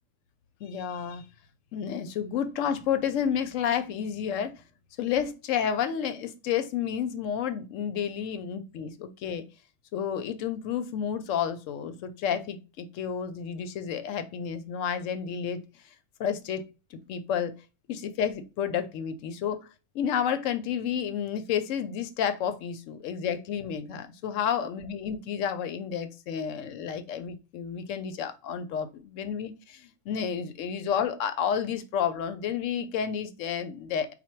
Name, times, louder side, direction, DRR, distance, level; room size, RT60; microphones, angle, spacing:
voice 1, 0.6-1.2 1.7-4.5 5.0-9.4 9.9-15.6 16.2-16.6 16.9-17.5 17.9-19.7 19.9-34.1, left 8 dB, 70° left, 10 dB, 0.9 m, -30 dB
4.2 x 2.3 x 4.4 m, 0.31 s
omnidirectional pair, 1.4 m